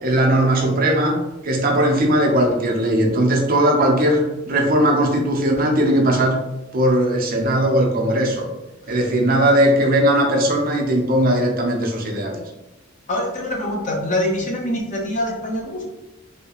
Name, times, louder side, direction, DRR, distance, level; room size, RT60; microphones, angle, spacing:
voice 1, 0.0-6.4 6.7-8.5 8.9-12.4, right 1 dB, 45° right, 1 dB, 0.6 m, -18 dB
voice 2, 13.1-15.9, left 1 dB, 40° left, -1 dB, 0.7 m, -24 dB
3.4 x 2.8 x 2.8 m, 1.0 s
head